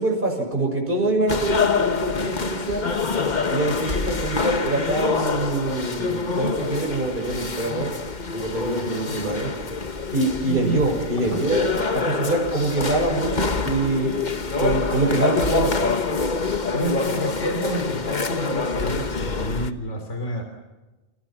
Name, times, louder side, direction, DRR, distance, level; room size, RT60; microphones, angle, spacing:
voice 1, 0.0-2.9 3.5-7.9 8.3-9.5 10.1-14.1 14.6-15.9, right 2 dB, 40° right, 1 dB, 6.4 m, -24 dB
sound 1, 1.3-19.7, left 4 dB, 35° left, 1.3 m, -26 dB
voice 2, 10.5-10.8 11.2-11.4 16.7-20.4, equal, 70° left, 5 dB, 3.7 m, -29 dB
29.5 x 26.5 x 6.0 m, 1.2 s
omnidirectional pair, 1.3 m